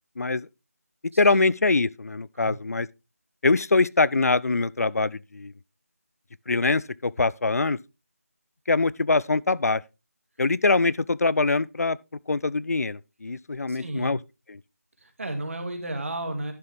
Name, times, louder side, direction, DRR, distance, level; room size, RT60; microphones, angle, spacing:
voice 1, 0.2-0.5 1.2-2.9 3.4-5.5 6.5-7.8 8.7-9.8 10.4-12.0 12.3-14.2 14.5-14.6, left 3 dB, 70° left, 0.5 m, -23 dB
voice 2, 1.1-1.5 2.3-2.6 13.7-14.1 15.0-16.5, right 1 dB, 55° right, 2.2 m, -33 dB
11.0 x 6.9 x 3.4 m
figure-of-eight pair, 170°, 9 cm